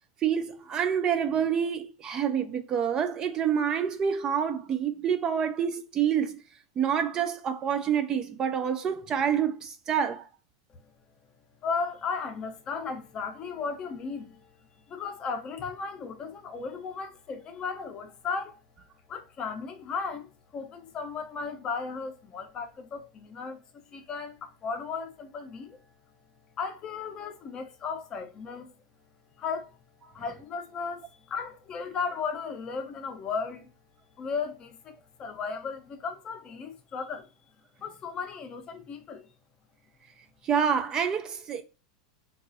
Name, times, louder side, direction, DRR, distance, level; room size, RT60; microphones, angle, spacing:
voice 1, 0.2-6.4 6.8-10.3 40.4-41.6, right 8 dB, 25° right, 0.3 m, -27 dB
voice 2, 11.6-14.5 14.9-18.6 19.1-23.6 23.9-25.8 26.6-28.7 29.4-29.7 30.1-33.7 34.2-37.3 37.8-39.3, left 5 dB, 30° left, 0.6 m, -35 dB
3.8 x 2.3 x 2.6 m
supercardioid pair, 135°, 3 cm